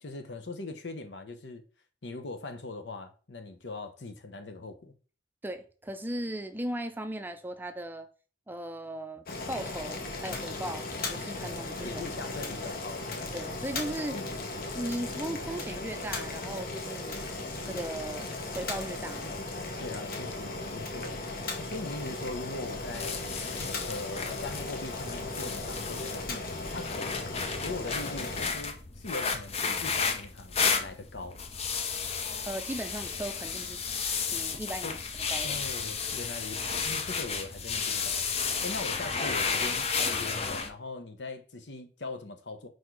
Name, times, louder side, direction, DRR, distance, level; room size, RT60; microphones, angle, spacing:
voice 1, 0.0-1.6 2.0-4.9 11.4-11.5 11.8-13.2 14.1-14.3 19.8-23.2 23.6-27.2 27.6-31.4 34.8-35.0 35.4-42.7, left 2 dB, 75° left, 1.0 m, -41 dB
voice 2, 5.4-8.1 8.5-12.1 13.3-14.2 14.7-17.2 17.7-19.4 32.4-33.8 34.3-34.9 35.3-35.6, right 1 dB, 10° right, 0.5 m, -37 dB
Boiling, 9.3-28.5, left 2 dB, 55° left, 1.1 m, -37 dB
sound 1, 22.6-40.7, left 5 dB, 35° left, 0.6 m, -33 dB
4.6 x 4.3 x 4.6 m
head